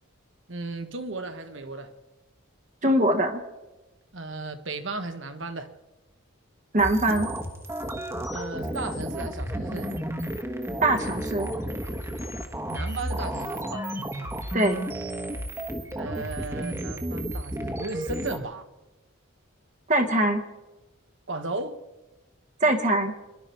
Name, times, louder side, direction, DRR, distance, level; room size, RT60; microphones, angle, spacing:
voice 1, 0.5-1.9 4.1-5.7 8.3-9.9 12.7-13.9 15.9-18.6 21.3-21.8, right 2 dB, 60° right, 1.3 m, -35 dB
voice 2, 2.8-3.4 6.7-7.3 10.8-11.5 14.5-14.9 19.9-20.4 22.6-23.1, right 1 dB, 35° right, 1.3 m, -22 dB
sound 1, 6.8-18.4, right 1 dB, 15° right, 1.3 m, -32 dB
25.5 x 12.0 x 4.5 m
head